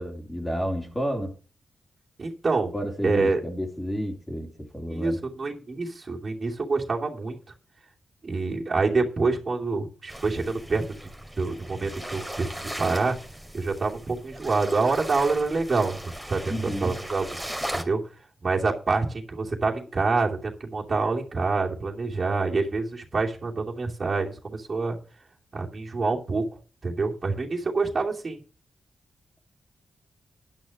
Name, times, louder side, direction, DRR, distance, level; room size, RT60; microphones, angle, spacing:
voice 1, 0.0-1.4 2.7-5.2 16.5-17.0, equal, 20° left, 3.6 m, -30 dB
voice 2, 2.2-2.7 3.0-3.4 4.9-7.4 8.2-10.8 11.4-13.2 13.5-16.0 16.3-18.0 18.4-25.0 25.5-26.4 26.8-28.4, right 3 dB, 50° right, 2.7 m, -26 dB
sound 1, 10.1-17.8, equal, 5° right, 2.7 m, -38 dB
10.5 x 6.4 x 6.4 m
supercardioid pair, 40°, 0 cm